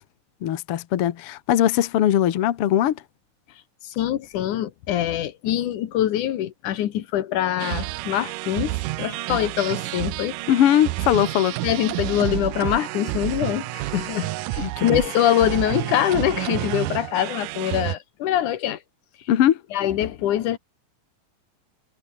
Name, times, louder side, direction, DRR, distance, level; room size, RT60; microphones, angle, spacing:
voice 1, 0.4-3.0 10.5-11.6 14.6-15.0 19.3-19.6, left 11 dB, 55° left, 1.8 m, -20 dB
voice 2, 3.8-10.3 11.6-18.8 19.7-20.6, left 12 dB, 75° left, 2.7 m, -24 dB
sound 1, 7.6-18.0, right 19 dB, 90° right, 2.2 m, -29 dB
omnidirectional pair, 3.7 m